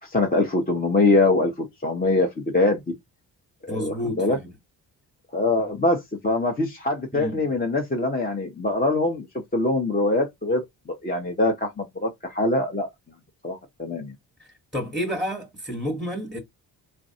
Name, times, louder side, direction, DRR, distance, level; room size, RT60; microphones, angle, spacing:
voice 1, 0.0-2.8 3.6-4.4 5.3-9.3 9.5-12.9 13.4-14.1, left 2 dB, 20° left, 0.8 m, -23 dB
voice 2, 3.7-4.5 7.1-7.4 14.7-16.4, equal, ahead, 1.1 m, -30 dB
3.1 x 2.4 x 2.7 m
supercardioid pair, 45°, 46 cm